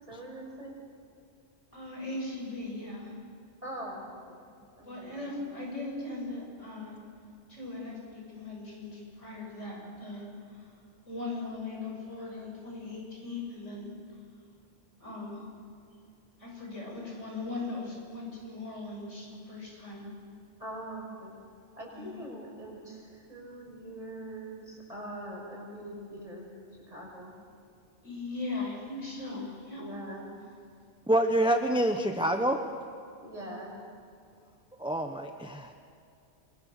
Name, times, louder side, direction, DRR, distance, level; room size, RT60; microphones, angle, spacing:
voice 1, 0.1-0.7 3.6-4.4 4.8-5.3 12.2-12.4 20.6-21.3 21.8-26.5 26.9-27.3 29.3-29.4 29.8-30.3 33.2-33.7, right 1 dB, 30° right, -2 dB, 6.4 m, -42 dB
voice 2, 1.7-3.1 4.8-7.0 7.5-10.6 11.1-13.9 15.0-15.5 16.4-20.1 21.9-22.2 28.0-29.9, left 2 dB, 90° left, -2 dB, 7.2 m, -39 dB
voice 3, 31.1-32.6 34.8-35.7, right 1 dB, 5° right, 5 dB, 1.0 m, -26 dB
27.0 x 22.5 x 6.8 m, 2.5 s
omnidirectional pair, 1.2 m